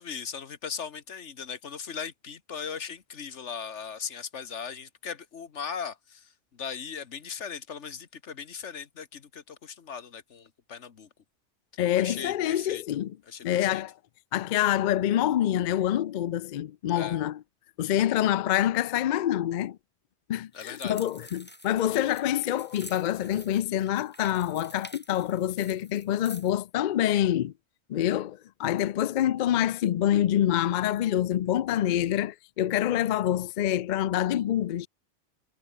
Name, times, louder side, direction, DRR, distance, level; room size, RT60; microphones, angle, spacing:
voice 1, 0.0-11.1 11.9-12.8 13.3-13.8 16.9-17.2 20.5-20.9 21.9-22.1, left 6 dB, 85° left, 1.6 m, -38 dB
voice 2, 11.8-13.1 13.4-13.9 14.3-17.4 17.8-19.8 20.3-27.5 27.9-34.9, left 12 dB, 60° left, 0.5 m, -26 dB
sound 1, 20.5-26.6, equal, 10° left, 7.9 m, -48 dB
omnidirectional pair, 1.2 m